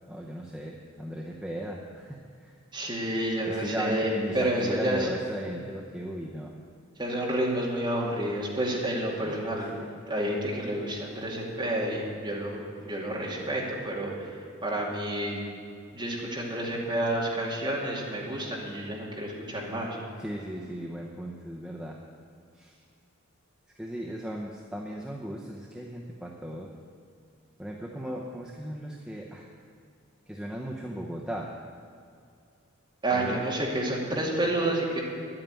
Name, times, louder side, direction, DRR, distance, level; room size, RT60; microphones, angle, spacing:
voice 1, 0.1-2.5 3.5-6.6 9.2-9.9 20.2-22.0 22.5-22.7 23.8-26.7 27.6-29.5 30.3-31.5 33.1-33.4, equal, 5° right, -2 dB, 0.8 m, -37 dB
voice 2, 2.7-5.1 7.0-9.7 10.1-14.3 14.6-15.4 15.9-20.0 33.0-35.0, right 1 dB, 20° right, -3 dB, 2.5 m, -29 dB
11.0 x 8.9 x 9.1 m, 2.3 s
head